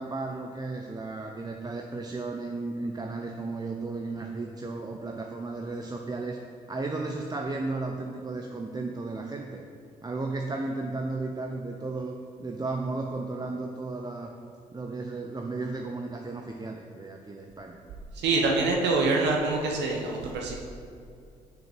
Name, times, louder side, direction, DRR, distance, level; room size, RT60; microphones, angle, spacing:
voice 1, 0.0-6.4 6.7-9.6 10.0-14.3 14.7-17.8, right 3 dB, 20° right, 2 dB, 0.6 m, -34 dB
voice 2, 18.1-20.6, right 3 dB, 65° right, 0 dB, 0.9 m, -25 dB
6.5 x 6.4 x 4.5 m, 2.4 s
hypercardioid pair, 45°, 19 cm